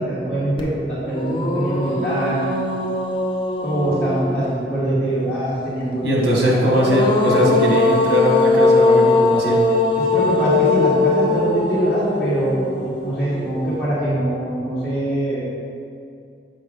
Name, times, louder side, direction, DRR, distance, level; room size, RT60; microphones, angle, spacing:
voice 1, 0.0-2.5 3.6-6.0 6.5-6.9 7.2-7.7 10.0-15.4, right 1 dB, 5° left, -13 dB, 1.4 m, -23 dB
sound 1, 0.6-0.7 1.1-4.7 6.4-13.7, left 3 dB, 30° left, 0.7 m, -20 dB
voice 2, 6.0-9.7, equal, 85° right, -3 dB, 1.5 m, -19 dB
7.7 x 5.0 x 3.7 m, 2.4 s
head